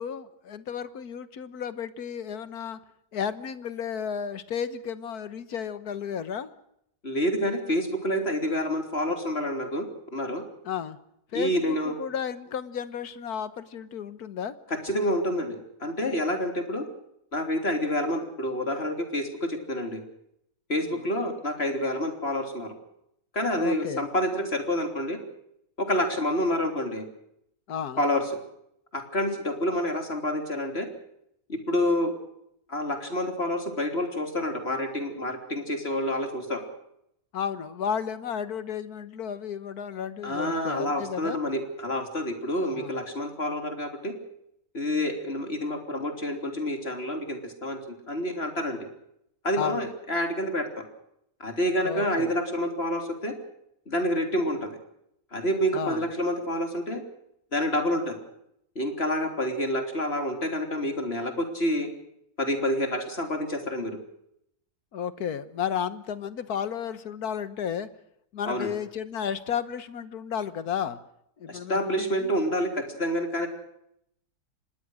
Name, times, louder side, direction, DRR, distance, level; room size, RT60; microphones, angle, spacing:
voice 1, 0.0-2.8 3.1-6.5 10.6-11.0 11.3-14.5 20.8-21.0 23.6-24.1 27.7-28.0 37.3-41.4 42.6-43.0 49.6-49.8 51.8-52.3 55.7-56.1 64.9-67.9 68.3-71.0 71.4-72.3, left 8 dB, 70° left, 14 dB, 1.7 m, -33 dB
voice 2, 7.0-9.9 10.1-10.4 11.3-11.9 14.8-16.9 17.3-20.0 20.7-22.7 23.3-25.2 25.8-27.1 28.0-28.2 28.9-30.9 31.5-32.1 32.7-36.6 40.2-44.1 44.7-47.8 48.1-48.9 49.4-50.9 51.4-53.3 53.9-54.7 55.3-57.0 57.5-58.2 58.8-61.9 62.4-64.0 68.4-68.7 71.5-73.5, equal, 40° left, 5 dB, 3.6 m, -28 dB
25.5 x 20.5 x 6.3 m, 0.77 s
omnidirectional pair, 1.7 m